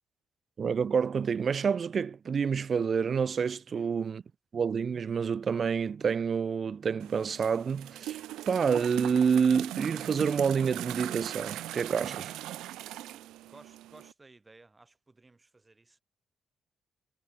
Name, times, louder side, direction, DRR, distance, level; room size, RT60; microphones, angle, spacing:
voice 1, 0.6-4.2 4.5-8.2 8.5-12.3, right 6 dB, 45° right, 0.6 m, -28 dB
sound 1, 7.0-14.1, right 15 dB, 90° right, 1.8 m, -40 dB
voice 2, 13.0-16.0, right 3 dB, 20° right, 5.2 m, -57 dB
cardioid pair, 90°, 0 cm